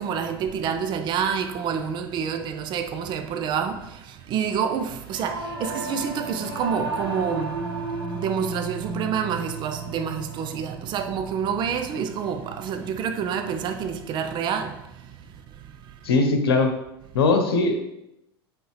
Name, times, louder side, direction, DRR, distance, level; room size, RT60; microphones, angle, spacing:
voice 1, 0.0-14.8, right 7 dB, 35° right, 0.6 m, -28 dB
Singing / Musical instrument, 5.1-14.6, right 3 dB, 85° right, 1.6 m, -35 dB
voice 2, 16.0-16.7 17.1-17.8, left 3 dB, 70° left, 1.0 m, -20 dB
7.8 x 5.1 x 3.2 m
figure-of-eight pair, 85°, 13 cm